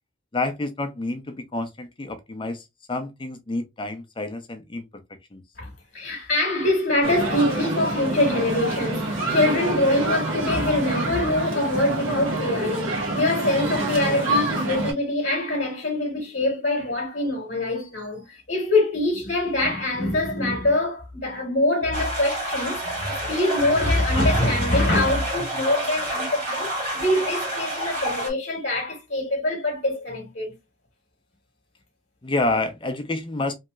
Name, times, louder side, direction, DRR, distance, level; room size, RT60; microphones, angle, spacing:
voice 1, 0.3-4.9 5.3-5.4 32.2-33.5, left 2 dB, 25° left, 0.5 m, -28 dB
voice 2, 5.6-30.5, left 1 dB, 50° left, 1.0 m, -24 dB
sound 1, 7.0-14.9, right 2 dB, 80° right, 1.4 m, -27 dB
sound 2, 21.9-28.3, right 1 dB, 45° right, 1.7 m, -29 dB
3.1 x 2.7 x 2.3 m
head